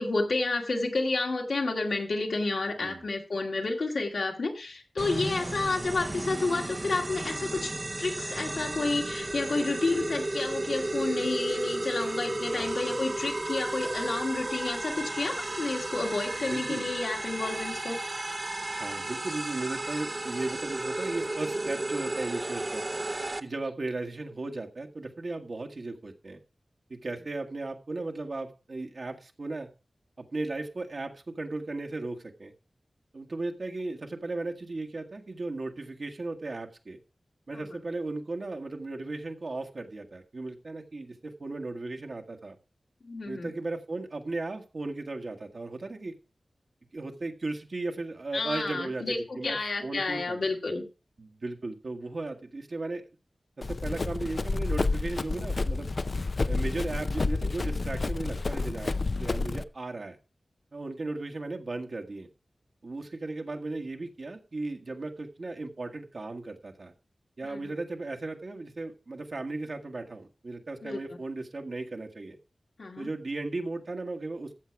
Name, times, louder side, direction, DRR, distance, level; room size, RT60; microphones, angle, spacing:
voice 1, 0.0-18.0 37.5-37.8 43.0-43.5 48.3-50.8 67.4-67.7 70.8-71.0 72.8-73.1, left 3 dB, 80° left, 1 dB, 2.3 m, -30 dB
sound 1, 5.0-23.4, right 2 dB, 35° right, 0.7 m, -33 dB
voice 2, 12.5-12.9 16.4-16.9 18.7-22.8 23.4-26.4 26.9-29.7 30.2-32.5 33.1-37.0 37.5-42.6 43.2-46.1 46.9-50.4 51.2-53.0 53.6-55.9 56.5-58.9 59.2-60.2 60.7-62.3 62.8-66.9 67.4-72.4 73.0-74.6, right 2 dB, 60° right, 3 dB, 1.5 m, -36 dB
Run, 53.6-59.6, left 3 dB, 50° left, 0.5 m, -29 dB
14.0 x 7.4 x 4.6 m, 0.33 s
wide cardioid pair, 90°, 0 cm